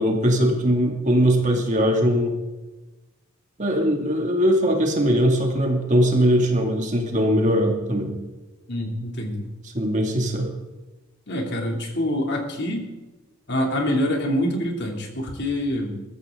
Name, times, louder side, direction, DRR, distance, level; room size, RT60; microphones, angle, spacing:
voice 1, 0.0-2.4 3.6-8.2 9.6-10.5, equal, 35° right, 1 dB, 2.8 m, -20 dB
voice 2, 8.7-9.5 11.3-12.9 13.5-16.0, left 1 dB, 55° left, 1 dB, 3.2 m, -25 dB
22.5 x 14.0 x 3.9 m, 1.1 s
head